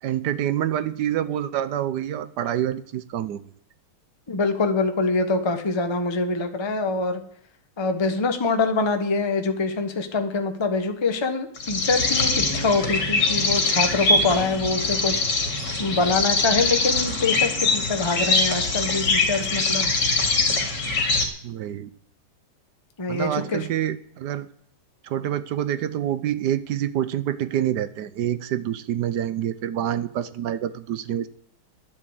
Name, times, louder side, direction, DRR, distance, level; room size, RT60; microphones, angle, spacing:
voice 1, 0.0-3.5 21.4-21.9 23.1-24.5 25.0-31.3, right 11 dB, 65° right, 13 dB, 1.2 m, -27 dB
voice 2, 4.3-7.2 7.8-15.2 15.8-19.9 23.0-23.7, left 3 dB, 20° left, 6 dB, 0.8 m, -24 dB
sound 1, 11.6-21.3, left 3 dB, 60° left, 2.8 m, -23 dB
10.5 x 10.0 x 7.9 m, 0.62 s
omnidirectional pair, 2.2 m